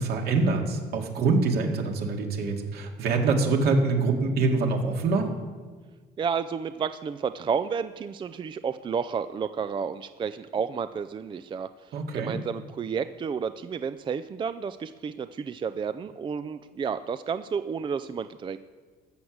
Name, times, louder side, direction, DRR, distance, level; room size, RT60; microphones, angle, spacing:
voice 1, 0.0-5.3 11.9-12.4, right 3 dB, 70° right, 2 dB, 2.2 m, -25 dB
voice 2, 6.2-18.6, right 6 dB, 30° right, 12 dB, 0.4 m, -31 dB
14.0 x 7.9 x 7.3 m, 1.4 s
cardioid pair, 110°, 17 cm